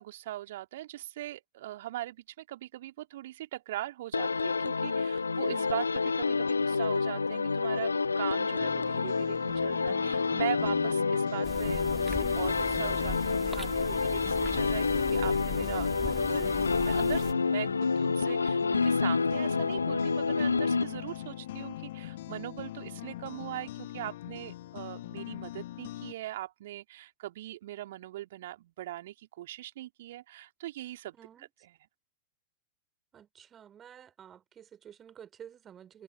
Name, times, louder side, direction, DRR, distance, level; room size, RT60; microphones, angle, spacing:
voice 1, 0.0-16.5 16.8-31.7, right 14 dB, 55° right, 2.9 m, -40 dB
sound 1, 4.1-21.3, left 4 dB, 75° left, 0.5 m, -28 dB
sound 2, 8.6-26.1, left 14 dB, 55° left, 2.6 m, -41 dB
sound 3, 11.4-17.3, right 1 dB, ahead, 3.0 m, -41 dB
voice 2, 31.1-31.5 33.1-36.0, right 9 dB, 25° right, 4.2 m, -51 dB
figure-of-eight pair, 90°, 0 cm